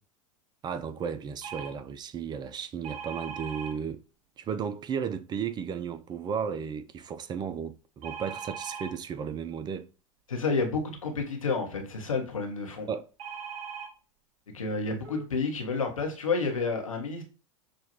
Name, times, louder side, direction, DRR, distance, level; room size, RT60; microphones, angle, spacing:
voice 1, 0.6-4.0 4.4-9.9 12.9-13.1, right 7 dB, 25° right, 0.4 m, -34 dB
sound 1, 1.4-1.7 2.8-3.7 8.0-8.9 13.2-13.9 14.7-14.8 15.0-15.2, right 7 dB, 65° right, 1.2 m, -39 dB
voice 2, 10.3-12.9 14.5-17.2, left 4 dB, 85° left, 1.1 m, -30 dB
6.3 x 2.4 x 2.7 m
hypercardioid pair, 90°, 17 cm